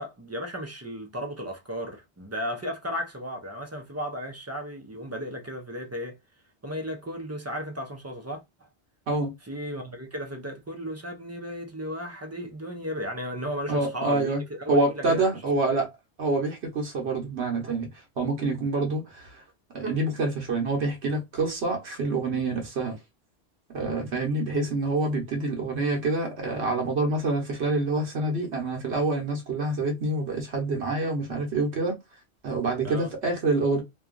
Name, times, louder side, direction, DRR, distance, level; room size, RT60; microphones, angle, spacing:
voice 1, 0.0-6.2 6.6-8.4 9.4-15.3 15.6-15.7 32.8-33.1, equal, 20° right, 0.4 m, -35 dB
voice 2, 13.7-14.4 14.7-15.9 16.2-17.9 18.2-19.4 19.7-23.0 23.7-31.9 32.4-33.8, right 2 dB, 75° right, 1.2 m, -26 dB
2.8 x 2.3 x 2.3 m
omnidirectional pair, 1.1 m